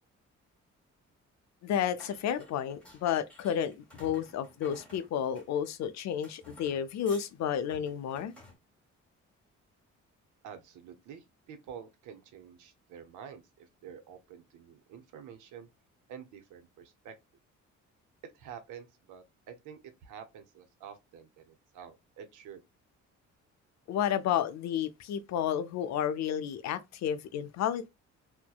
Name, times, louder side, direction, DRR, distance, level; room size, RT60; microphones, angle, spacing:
voice 1, 1.6-8.3 23.9-27.9, left 9 dB, 65° left, 0.5 m, -31 dB
sound 1, 2.0-5.8 6.2-7.3 7.7-8.6, left 1 dB, 5° left, 1.1 m, -54 dB
voice 2, 10.4-15.7 16.1-17.1 18.3-22.6, right 8 dB, 80° right, 0.7 m, -48 dB
2.7 x 2.1 x 2.2 m
cardioid pair, 90°, 30 cm